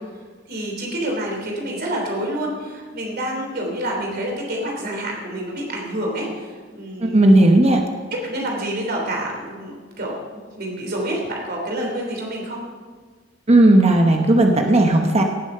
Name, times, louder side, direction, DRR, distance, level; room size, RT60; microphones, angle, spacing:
voice 1, 0.1-7.4 8.2-10.1 10.6-12.6, right 1 dB, 55° right, 0 dB, 3.2 m, -28 dB
voice 2, 7.0-7.8 13.5-15.2, right 1 dB, 35° right, 3 dB, 1.0 m, -14 dB
17.5 x 7.2 x 5.5 m, 1.5 s
head